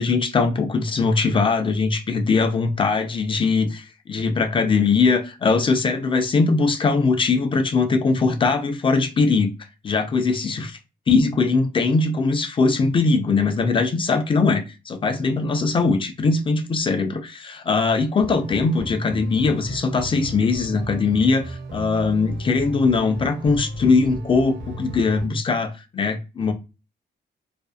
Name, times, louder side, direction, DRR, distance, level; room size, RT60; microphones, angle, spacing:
voice 1, 0.0-9.5 9.8-10.8 11.1-26.5, left 4 dB, 30° left, 0.4 m, -21 dB
sound 1, 18.2-25.3, right 1 dB, 80° right, 0.8 m, -35 dB
2.5 x 2.4 x 2.3 m
wide cardioid pair, 140°, 18 cm